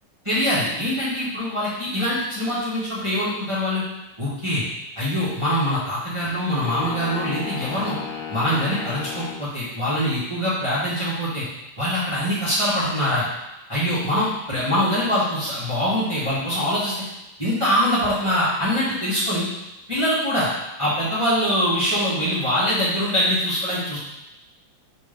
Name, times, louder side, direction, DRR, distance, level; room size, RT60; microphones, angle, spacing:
voice 1, 0.2-3.8 4.2-4.6 4.9-8.0 8.3-11.4 11.8-13.2 13.7-16.9 17.4-19.5 19.9-20.5 20.8-24.0, equal, 15° right, -10 dB, 1.0 m, -23 dB
sound 1, 6.6-9.5, left 7 dB, 85° left, 2.1 m, -33 dB
5.2 x 3.4 x 5.3 m, 0.97 s
omnidirectional pair, 3.6 m